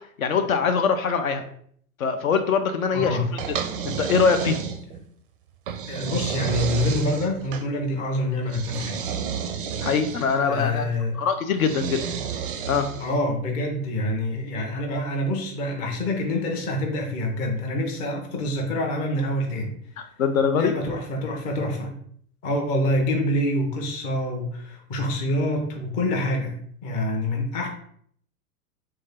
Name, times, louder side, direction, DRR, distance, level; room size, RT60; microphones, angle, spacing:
voice 1, 0.2-1.4 2.0-3.2 3.9-4.6 9.8-12.0 12.7-12.9 20.0-20.7, left 6 dB, 65° left, 8 dB, 0.6 m, -23 dB
voice 2, 2.9-3.2 5.9-9.0 10.4-11.2 13.0-19.8 20.6-22.0 22.4-27.7, left 1 dB, 20° left, 1 dB, 0.5 m, -26 dB
sound 1, 3.4-5.1 5.7-7.7 8.5-10.4 11.6-13.2, right 7 dB, 40° right, 0.4 m, -30 dB
3.3 x 2.7 x 3.4 m, 0.63 s
figure-of-eight pair, 100°, 46 cm